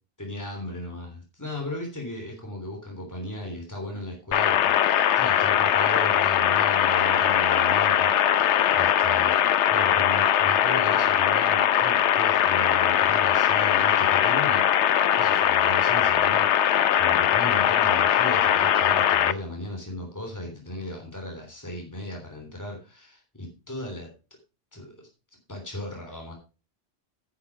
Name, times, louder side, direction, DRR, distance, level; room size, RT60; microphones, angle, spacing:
voice 1, 0.2-14.7 15.1-24.1 24.7-25.1 25.5-26.3, left 1 dB, 15° left, 1 dB, 3.4 m, -36 dB
sound 1, 4.3-19.3, left 10 dB, 85° left, 1.0 m, -21 dB
10.0 x 8.9 x 4.7 m, 0.31 s
omnidirectional pair, 1.2 m